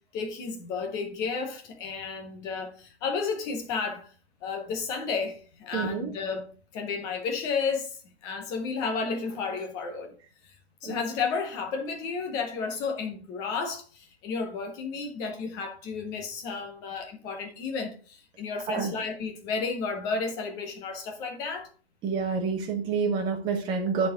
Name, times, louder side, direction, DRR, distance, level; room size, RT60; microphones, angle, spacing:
voice 1, 0.1-4.1 4.4-6.5 6.7-10.1 10.4-10.5 10.8-21.7, left 5 dB, 10° left, 0.6 m, -32 dB
voice 2, 5.7-6.1 10.8-11.0 18.7-18.9 22.0-24.1, right 5 dB, 15° right, 1.1 m, -28 dB
9.6 x 4.2 x 3.7 m
hypercardioid pair, 160°, 32 cm